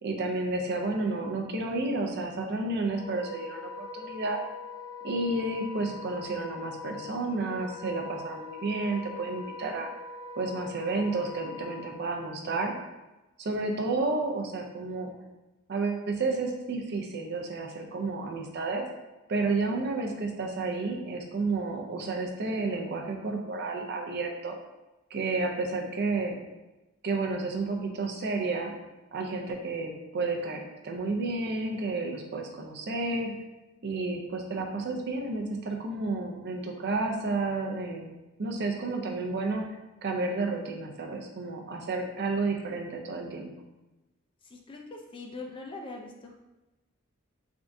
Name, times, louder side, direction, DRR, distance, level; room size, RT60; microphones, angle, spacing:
voice 1, 0.0-4.4 5.0-9.9 10.4-12.7 13.4-15.1 15.7-18.9 19.3-24.5 25.1-26.4 27.0-28.7 29.1-33.3 33.8-39.6 40.0-43.5, right 3 dB, 50° right, 2 dB, 0.5 m, -31 dB
Wind instrument woodwind instrument, 2.9-11.9, left 5 dB, 85° left, 1.0 m, -42 dB
voice 2, 44.4-46.3, left 3 dB, 25° left, 1 dB, 0.4 m, -42 dB
3.5 x 3.5 x 2.6 m, 1.1 s
head